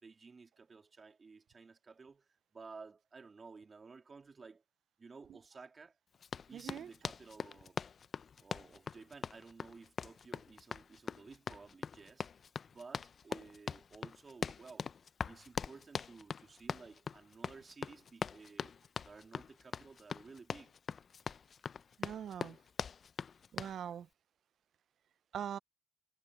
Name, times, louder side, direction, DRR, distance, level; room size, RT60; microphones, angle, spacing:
voice 1, 0.0-4.6 5.0-6.0 6.5-7.8 8.4-12.3 12.7-14.9 15.2-18.7 19.0-20.7, right 4 dB, 35° right, 3.2 m, -55 dB
Run, 6.2-23.8, left 6 dB, 45° left, 0.5 m, -42 dB
voice 2, 6.5-6.9 22.0-22.6 23.5-24.1 25.3-25.6, right 9 dB, 65° right, 0.5 m, -42 dB
cardioid pair, 90°, 0 cm